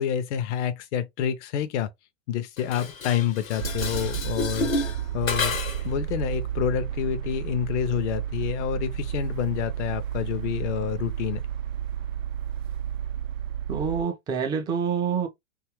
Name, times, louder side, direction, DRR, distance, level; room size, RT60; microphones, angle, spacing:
voice 1, 0.0-1.9 2.3-5.6 5.8-11.4, left 9 dB, 60° left, 0.6 m, -28 dB
Dishes pots and pans, 2.6-5.9, left 4 dB, 85° left, 0.9 m, -30 dB
sound 1, 3.6-14.0, right 10 dB, 80° right, 0.5 m, -31 dB
voice 2, 13.7-15.3, right 6 dB, 10° right, 0.3 m, -27 dB
2.7 x 2.4 x 2.9 m
hypercardioid pair, 95°, 39 cm